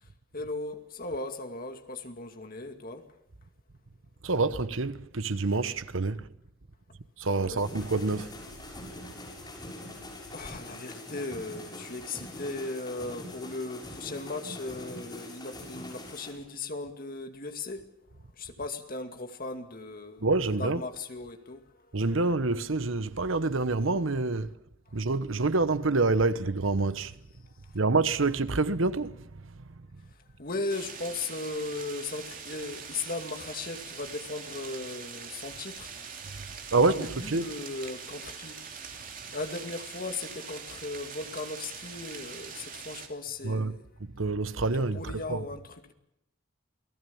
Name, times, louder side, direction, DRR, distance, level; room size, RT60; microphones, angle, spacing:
voice 1, 0.3-3.0 7.4-7.6 10.3-17.9 18.4-20.3 20.6-21.6 30.4-35.9 36.8-38.5 39.3-43.8 44.7-45.9, left 3 dB, 45° left, 2.4 m, -37 dB
voice 2, 4.2-6.3 7.2-8.3 20.2-20.8 21.9-24.5 24.9-27.1 27.7-29.1 36.7-37.5 43.4-43.8 44.2-45.4, right 3 dB, 75° right, 1.1 m, -27 dB
sound 1, 7.6-16.3, left 1 dB, 20° left, 7.2 m, -43 dB
sound 2, 30.7-43.1, right 6 dB, 40° right, 3.0 m, -43 dB
28.5 x 19.0 x 7.1 m
head